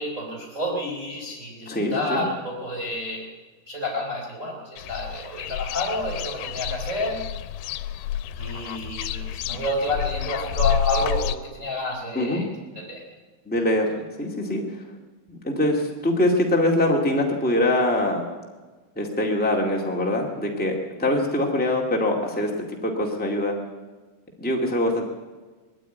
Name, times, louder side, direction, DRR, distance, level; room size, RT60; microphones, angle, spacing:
voice 1, 0.0-3.3 3.7-7.2 8.4-12.5 12.7-13.0, left 1 dB, 20° right, -2 dB, 3.7 m, -29 dB
voice 2, 1.7-2.2 12.1-12.4 13.4-14.6 15.3-18.2 18.9-22.5 22.8-23.6 24.4-25.0, left 1 dB, 5° left, -1 dB, 0.7 m, -23 dB
sound 1, 4.8-11.4, left 10 dB, 80° left, 2.7 m, -29 dB
20.5 x 14.0 x 9.3 m, 1.3 s
omnidirectional pair, 4.6 m